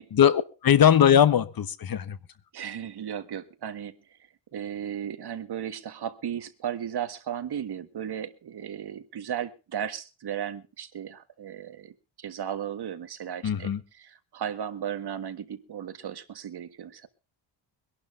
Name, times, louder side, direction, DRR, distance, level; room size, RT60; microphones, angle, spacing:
voice 1, 0.1-2.2 13.4-13.8, left 9 dB, 50° left, 14 dB, 1.0 m, -20 dB
voice 2, 2.5-4.2 4.5-13.7 14.0-17.1, right 9 dB, 55° right, 10 dB, 1.5 m, -35 dB
24.0 x 11.5 x 2.6 m, 0.32 s
wide cardioid pair, 150°, 45 cm